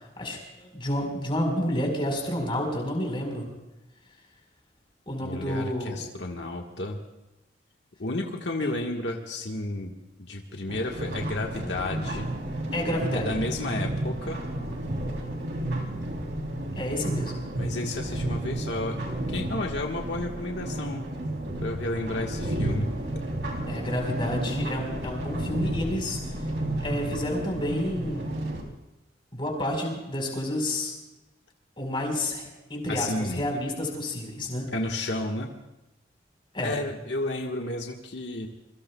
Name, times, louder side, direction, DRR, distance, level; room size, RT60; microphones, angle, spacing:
voice 1, 0.2-3.5 5.1-6.0 8.6-8.7 12.7-13.3 16.8-17.4 23.7-26.2 26.8-28.4 29.3-30.9 31.8-34.7 36.5-36.8, left 1 dB, 30° left, 1 dB, 4.6 m, -30 dB
voice 2, 5.2-7.0 8.0-9.9 10.2-12.3 13.1-14.4 17.5-19.0 19.3-21.0 21.6-22.9 32.9-33.4 34.7-35.5 36.6-38.5, left 2 dB, 80° left, 1 dB, 1.5 m, -32 dB
sound 1, 10.7-28.6, right 1 dB, 80° right, 3.4 m, -32 dB
26.5 x 23.5 x 2.3 m, 1.0 s
head